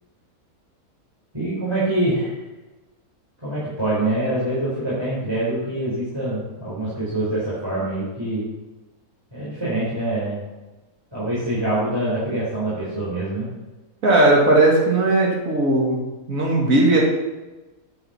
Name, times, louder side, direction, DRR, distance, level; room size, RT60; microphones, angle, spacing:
voice 1, 1.3-2.3 3.4-8.5 9.3-10.4 11.1-13.5, right 1 dB, 15° right, -10 dB, 4.4 m, -25 dB
voice 2, 14.0-16.0 16.3-17.0, right 2 dB, 60° right, -2 dB, 2.5 m, -17 dB
9.4 x 9.0 x 5.8 m, 1.1 s
omnidirectional pair, 1.6 m